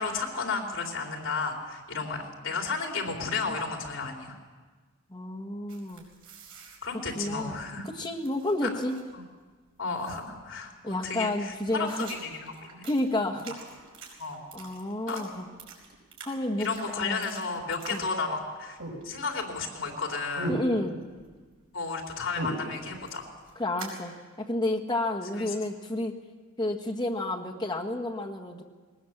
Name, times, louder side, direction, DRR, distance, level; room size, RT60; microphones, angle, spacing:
voice 1, 0.0-4.3 6.8-7.9 8.6-8.7 9.1-9.2 9.8-11.9 12.2-12.8 14.2-14.4 15.1-15.2 16.6-18.8 19.0-20.5 21.7-23.3 25.3-25.5, left 4 dB, 65° left, 1 dB, 3.4 m, -33 dB
voice 2, 5.1-6.0 7.1-8.9 9.9-10.0 10.8-12.1 12.8-13.5 14.5-15.4 16.2-16.7 17.0-17.2 17.9-18.1 20.5-21.0 23.5-24.1 24.4-26.2 26.6-28.6, left 1 dB, 20° left, 0 dB, 1.7 m, -30 dB
Banana Munching, 5.7-7.9 8.2-9.2 9.5-9.6 9.9-10.5 10.9-11.0 11.3-18.5 18.8-19.5 19.8-21.3 21.6-24.0, right 2 dB, 65° right, 5.2 m, -41 dB
20.0 x 19.5 x 7.3 m, 1.4 s
head